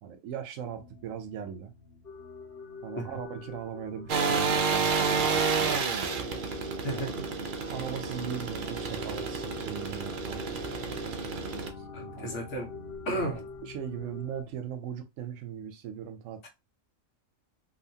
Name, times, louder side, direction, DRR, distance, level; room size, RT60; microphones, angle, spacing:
voice 1, 0.0-1.7 2.8-5.8 6.9-7.1 7.7-10.6 11.8-11.9 12.2-12.4 13.1-16.5, right 8 dB, 85° right, 1.0 m, -39 dB
sound 1, 0.6-14.5, left 1 dB, 10° left, 0.7 m, -49 dB
sound 2, 2.0-14.4, left 4 dB, 50° left, 0.8 m, -46 dB
sound 3, 4.1-11.7, right 5 dB, 65° right, 0.5 m, -30 dB
voice 2, 6.8-7.1 11.9-12.7 13.0-13.4 16.4-16.5, right 1 dB, 70° left, 1.3 m, -33 dB
2.8 x 2.4 x 2.7 m
omnidirectional pair, 1.3 m